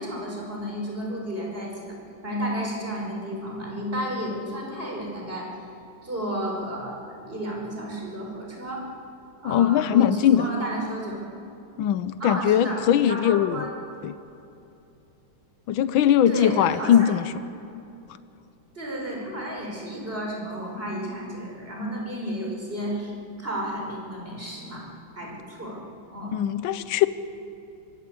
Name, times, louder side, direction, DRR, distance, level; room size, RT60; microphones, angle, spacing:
voice 1, 0.0-2.0 2.2-5.5 6.0-8.9 9.4-11.2 12.2-12.8 13.1-13.7 16.3-17.1 18.8-23.1 23.4-24.8 25.2-25.8 26.1-26.4, equal, 25° right, -1 dB, 5.6 m, -32 dB
voice 2, 9.4-10.5 11.8-13.7 14.0-14.1 15.7-17.2 26.3-27.1, left 10 dB, 80° left, 13 dB, 1.5 m, -20 dB
23.5 x 19.5 x 8.3 m, 2.8 s
omnidirectional pair, 2.1 m